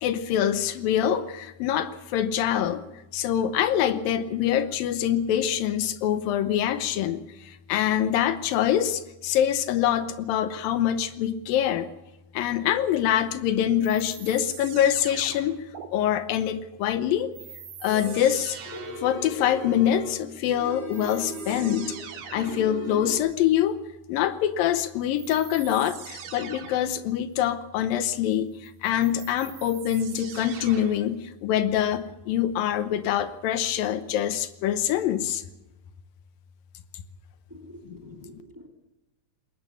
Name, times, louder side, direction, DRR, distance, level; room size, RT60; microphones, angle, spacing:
voice 1, 0.0-2.8 3.1-11.9 12.3-15.7 15.9-17.3 17.8-18.6 19.0-21.9 22.3-23.8 24.1-35.4 37.9-38.2, left 10 dB, 80° left, 11 dB, 2.7 m, -25 dB
sound 1, 13.8-15.9 17.3-19.2 20.4-20.5 20.9-22.8 25.1-26.9 28.6-31.1, right 7 dB, 65° right, 3.2 m, -42 dB
sound 2, 17.8-18.3 18.7-20.2 20.5-22.0 22.3-23.2, equal, 35° left, 6.2 m, -37 dB
voice 2, 37.5-38.7, equal, 5° right, 2 dB, 1.7 m, -47 dB
21.0 x 19.0 x 6.8 m, 0.99 s
omnidirectional pair, 4.0 m